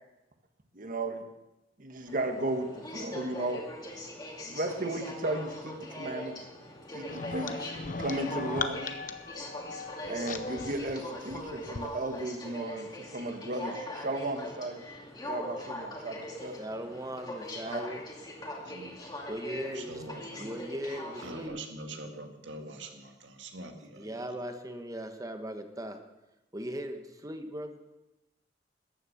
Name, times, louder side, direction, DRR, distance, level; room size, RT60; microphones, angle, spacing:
voice 1, 0.7-1.2 1.8-3.6 4.4-6.3 6.9-7.6 7.8-8.9 10.1-14.8 15.2-16.5 17.6-17.8, right 1 dB, 50° right, 6 dB, 1.6 m, -35 dB
Aircraft, 2.1-21.5, left 1 dB, 25° left, 2.4 m, -42 dB
sound 1, 7.1-11.9, left 4 dB, 45° left, 0.8 m, -38 dB
voice 2, 16.6-18.1 19.3-22.3 22.8-23.0 23.9-26.0 26.5-27.8, equal, 20° right, 7 dB, 1.2 m, -39 dB
voice 3, 18.4-18.9 19.7-20.6 21.2-24.2, right 2 dB, 90° right, 5 dB, 1.8 m, -44 dB
14.0 x 10.0 x 6.6 m, 0.98 s
head